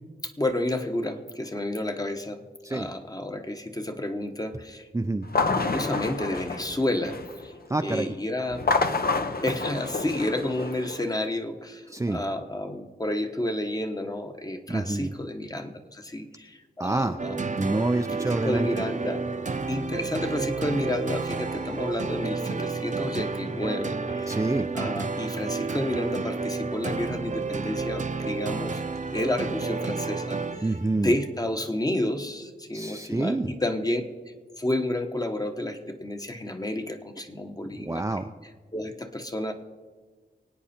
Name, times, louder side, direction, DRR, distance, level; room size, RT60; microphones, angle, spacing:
voice 1, 0.2-2.4 2.7-4.9 5.6-7.5 7.8-8.7 9.4-17.5 18.3-19.3 19.7-24.4 24.7-28.8 29.1-30.4 30.9-34.0 34.6-38.2 38.7-39.5, left 1 dB, 20° left, 6 dB, 1.1 m, -30 dB
voice 2, 4.9-5.3 7.7-8.1 11.9-12.2 14.7-15.1 16.8-17.2 17.6-18.7 24.3-24.7 30.6-31.1 32.7-33.5 37.8-38.3, right 2 dB, 15° right, 6 dB, 0.5 m, -27 dB
sound 1, 5.2-7.4 8.5-11.0, left 3 dB, 60° left, 1.0 m, -28 dB
sound 2, 17.2-30.9, right 4 dB, 45° right, 0.8 m, -31 dB
24.5 x 9.1 x 4.3 m, 1.5 s
wide cardioid pair, 90°, 17 cm